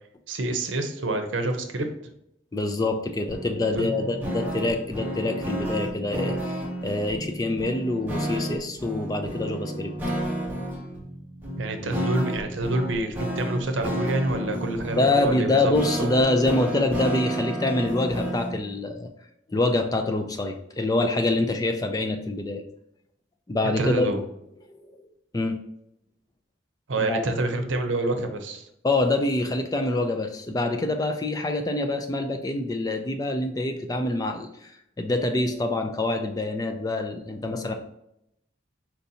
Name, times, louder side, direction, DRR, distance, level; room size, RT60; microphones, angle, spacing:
voice 1, 0.3-1.9 3.7-3.9 11.6-15.7 16.0-16.1 23.8-24.2 26.9-28.6, right 2 dB, 80° right, 6 dB, 0.7 m, -27 dB
voice 2, 2.5-9.9 10.5-10.7 15.0-19.1 19.5-22.6 23.5-24.1 24.7-25.0 25.3-25.6 27.0-27.2 28.8-37.7, left 2 dB, 20° left, 6 dB, 0.4 m, -26 dB
sound 1, 3.3-18.6, equal, 10° right, 1.2 m, -32 dB
4.5 x 4.0 x 2.8 m, 0.79 s
head